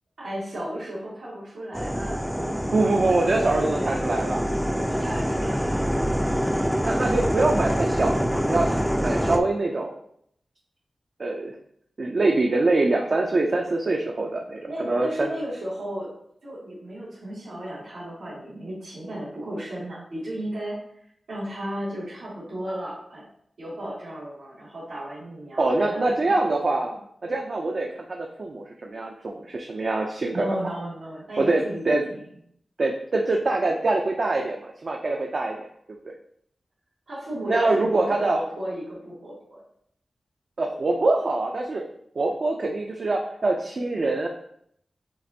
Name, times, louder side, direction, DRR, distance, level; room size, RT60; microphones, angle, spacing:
voice 1, 0.2-2.6 3.1-4.1 4.7-5.8 14.6-16.1 16.4-20.8 21.3-23.3 23.6-27.0 30.3-32.2 37.1-39.6, right 1 dB, 90° right, -9 dB, 1.7 m, -34 dB
sound 1, 1.7-9.4, equal, ahead, 0.4 m, -25 dB
voice 2, 2.7-4.5 6.8-9.9 11.2-11.5 12.0-15.3 25.6-26.9 27.2-30.6 31.4-32.0 32.8-35.7 37.5-38.4 40.6-41.8 42.2-44.3, right 2 dB, 55° right, 1 dB, 0.5 m, -24 dB
7.5 x 2.5 x 2.7 m, 0.69 s
wide cardioid pair, 70°, 0 cm